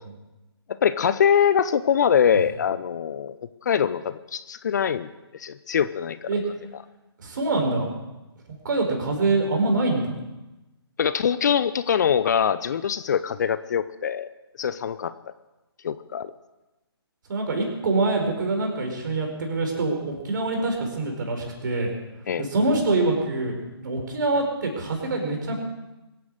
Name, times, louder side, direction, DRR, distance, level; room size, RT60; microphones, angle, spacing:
voice 1, 0.8-3.4 3.6-6.3 11.0-14.3 14.6-15.1 15.8-16.3 22.3-22.4, left 8 dB, 40° left, 13 dB, 0.7 m, -23 dB
voice 2, 7.2-7.9 8.6-10.1 17.3-21.9 22.4-23.6 23.8-25.5, right 2 dB, 45° right, 2 dB, 4.8 m, -25 dB
23.5 x 9.4 x 6.5 m, 1.0 s
figure-of-eight pair, 140°, 14 cm